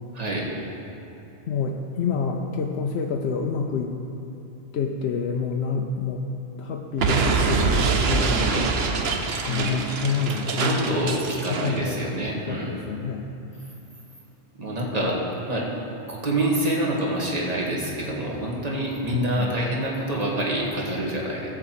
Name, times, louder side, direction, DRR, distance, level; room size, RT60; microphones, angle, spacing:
voice 1, 0.1-0.5 9.5-9.7 10.5-12.8 14.6-15.7 16.1-21.5, right 1 dB, 35° right, -3 dB, 1.6 m, -27 dB
voice 2, 1.5-3.9 4.7-6.2 6.6-8.7 9.4-11.2 11.5-12.0 12.5-13.2 14.8-15.3 19.1-19.6, left 5 dB, 65° left, 2 dB, 0.8 m, -28 dB
Explosion, 7.0-11.8, right 4 dB, 65° right, 0.9 m, -24 dB
13.5 x 4.7 x 7.6 m, 2.9 s
omnidirectional pair, 1.2 m